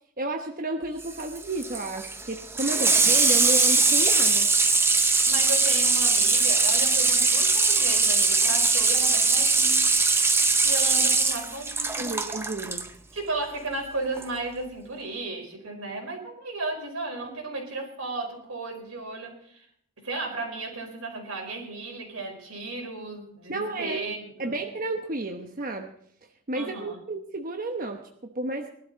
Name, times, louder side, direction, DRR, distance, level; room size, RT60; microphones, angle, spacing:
voice 1, 0.2-4.5 12.0-12.9 23.5-24.0 24.4-25.9 26.5-28.7, right 2 dB, 40° right, 3 dB, 1.0 m, -32 dB
Water tap faucet / Sink (filling or washing), 1.0-12.9 14.2-14.3, right 3 dB, 10° right, 0.6 m, -21 dB
voice 2, 5.2-9.8 10.6-12.1 13.1-19.6 20.0-24.6 26.5-27.0, right 2 dB, 85° right, 1 dB, 4.7 m, -34 dB
21.0 x 12.0 x 4.0 m, 0.66 s
head